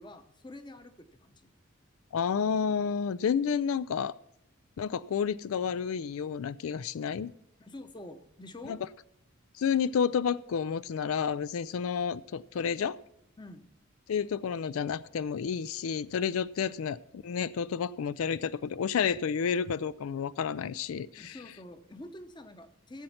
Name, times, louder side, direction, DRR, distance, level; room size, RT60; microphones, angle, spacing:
voice 1, 0.0-1.4 7.6-8.8 13.4-13.7 21.2-23.0, left 1 dB, 20° left, 9 dB, 0.8 m, -47 dB
voice 2, 2.1-4.1 4.8-7.3 8.7-8.8 9.5-13.0 14.1-21.4, left 7 dB, 85° left, 17 dB, 0.4 m, -30 dB
14.5 x 7.8 x 5.7 m, 0.75 s
head